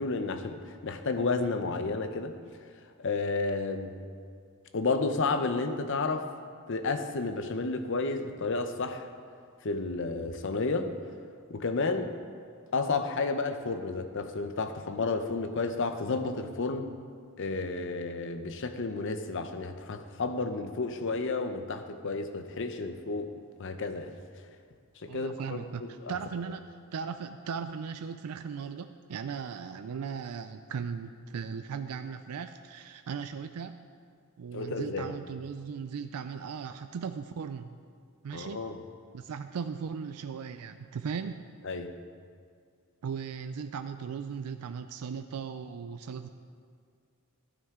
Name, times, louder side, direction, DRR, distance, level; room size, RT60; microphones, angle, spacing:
voice 1, 0.0-2.4 3.0-3.9 4.7-6.3 6.7-9.1 9.6-10.9 11.5-12.1 12.7-16.9 17.4-23.3 23.6-24.1 25.0-26.2 34.5-35.2 38.3-38.8 41.6-41.9, left 3 dB, 55° left, 8 dB, 0.7 m, -31 dB
voice 2, 25.1-33.8 34.4-37.7 38.2-38.7 39.1-41.5 43.0-46.3, right 6 dB, 85° right, 9 dB, 0.4 m, -37 dB
14.5 x 9.3 x 3.7 m, 2.2 s
head